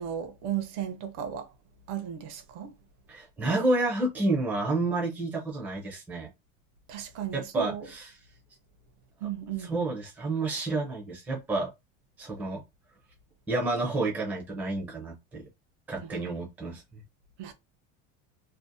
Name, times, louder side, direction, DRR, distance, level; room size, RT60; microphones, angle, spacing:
voice 1, 0.0-1.5 1.9-2.7 6.9-7.9 9.2-9.7 16.0-16.2 17.4-17.5, right 9 dB, 70° right, 0.6 m, -35 dB
voice 2, 3.1-6.3 7.3-8.1 9.6-11.7 12.2-12.6 13.5-15.4 15.9-17.0, right 2 dB, 5° right, 0.4 m, -30 dB
2.6 x 2.0 x 2.5 m
cardioid pair, 160°, 36 cm